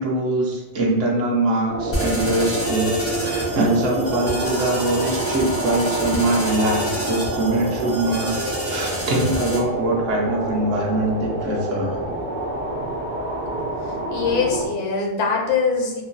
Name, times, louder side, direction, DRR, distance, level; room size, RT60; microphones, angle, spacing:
voice 1, 0.0-8.3 8.6-11.9, right 2 dB, 70° right, -2 dB, 1.0 m, -23 dB
sound 1, 1.7-14.7, right 1 dB, 55° right, 0.5 m, -27 dB
sound 2, 1.9-9.6, equal, 15° left, 0.4 m, -30 dB
voice 2, 14.1-16.0, left 5 dB, 70° left, 0 dB, 0.9 m, -22 dB
2.9 x 2.2 x 2.5 m, 1.1 s
omnidirectional pair, 1.3 m